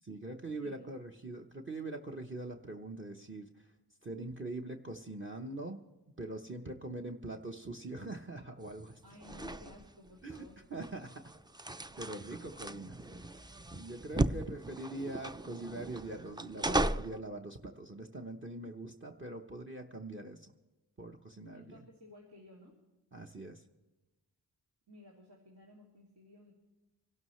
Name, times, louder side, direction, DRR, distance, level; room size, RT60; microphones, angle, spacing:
voice 1, 0.0-3.7 4.0-5.8 6.2-9.0 10.2-11.3 12.0-20.5 21.0-21.8 23.1-23.6, right 2 dB, 30° right, 5 dB, 1.0 m, -43 dB
voice 2, 0.6-0.9 9.0-10.6 21.5-22.8 24.9-26.5, left 1 dB, 75° right, -4 dB, 3.3 m, -56 dB
sound 1, 8.6-17.2, right 1 dB, 10° right, 0.4 m, -37 dB
26.0 x 12.0 x 3.2 m, 1.1 s
wide cardioid pair, 75°, 40 cm